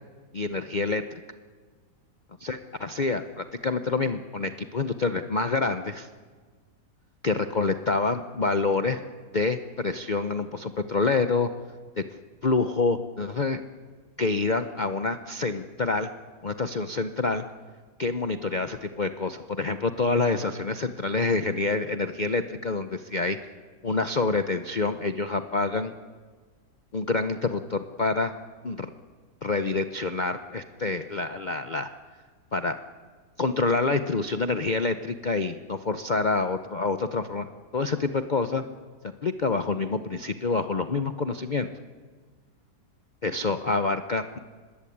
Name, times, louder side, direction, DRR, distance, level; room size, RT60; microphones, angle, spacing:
voice 1, 0.3-1.0 2.4-6.1 7.2-9.0 9.3-11.5 12.0-12.1 12.4-13.6 14.2-16.1 16.4-17.4 18.0-23.4 23.8-25.9 26.9-28.3 28.6-28.9 29.4-31.9 32.5-32.8 33.4-38.6 39.2-41.7 43.2-44.4, left 3 dB, 45° left, 9 dB, 0.6 m, -27 dB
25.0 x 20.5 x 8.6 m, 1.5 s
omnidirectional pair, 1.8 m